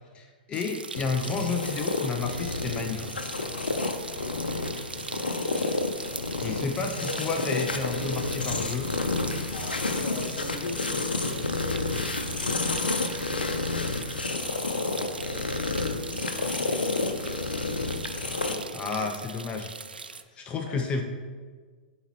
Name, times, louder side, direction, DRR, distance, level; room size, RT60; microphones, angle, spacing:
voice 1, 0.1-3.1 6.4-8.9 18.7-19.7 20.4-21.0, left 4 dB, 20° left, 4 dB, 0.6 m, -31 dB
sound 1, 0.5-20.2, right 4 dB, 85° right, 0.4 m, -41 dB
sound 2, 0.9-18.6, left 3 dB, 85° left, 0.7 m, -30 dB
voice 2, 4.1-4.8 9.5-11.9 12.3-13.9 14.3-17.4 18.3-19.1 20.0-20.9, left 2 dB, 55° left, 1 dB, 1.6 m, -42 dB
12.0 x 4.1 x 3.0 m, 1.6 s
figure-of-eight pair, 110°, 5 cm